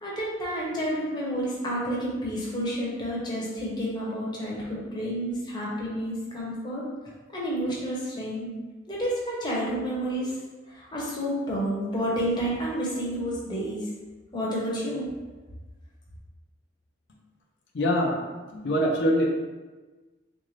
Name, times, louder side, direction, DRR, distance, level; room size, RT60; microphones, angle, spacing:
voice 1, 0.0-6.8 7.3-8.5 8.9-10.3 10.7-13.8 14.3-15.0, equal, 25° left, -5 dB, 0.9 m, -30 dB
voice 2, 17.7-18.2 18.5-19.3, equal, 65° left, 0 dB, 0.5 m, -23 dB
3.7 x 2.6 x 3.1 m, 1.3 s
head